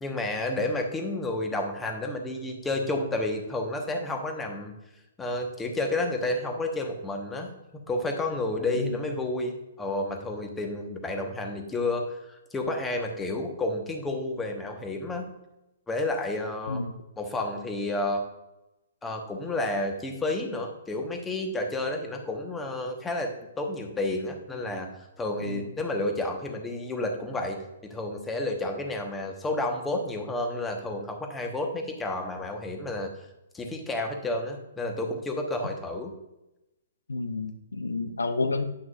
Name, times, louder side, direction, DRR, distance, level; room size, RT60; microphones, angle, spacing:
voice 1, 0.0-4.7 5.2-15.3 15.9-16.8 17.2-18.2 19.0-23.3 23.6-33.1 33.5-36.1, left 2 dB, 10° left, 3 dB, 1.2 m, -31 dB
voice 2, 37.1-38.6, left 3 dB, 85° left, 9 dB, 0.7 m, -30 dB
9.3 x 6.0 x 2.5 m, 0.94 s
hypercardioid pair, 125°, 0 cm